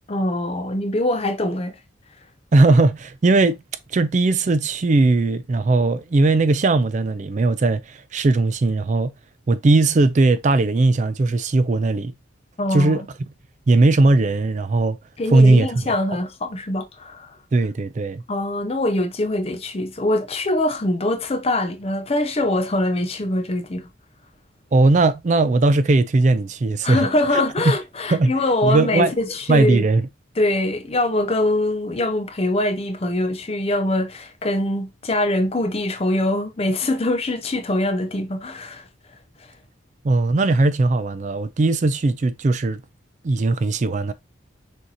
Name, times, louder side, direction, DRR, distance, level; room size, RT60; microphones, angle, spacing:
voice 1, 0.1-1.8 12.6-13.1 15.2-17.3 18.3-23.9 26.8-29.8 30.4-38.8, left 1 dB, 30° left, 0.5 m, -23 dB
voice 2, 2.5-3.5 3.9-9.1 9.5-12.1 12.7-13.1 13.7-15.0 15.3-15.7 16.1-16.2 17.5-18.2 24.7-27.1 27.3-27.4 28.1-28.3 28.6-29.1 29.5-30.0 40.0-42.8 43.2-44.1, right 2 dB, 35° right, 0.4 m, -18 dB
6.3 x 2.8 x 2.7 m
head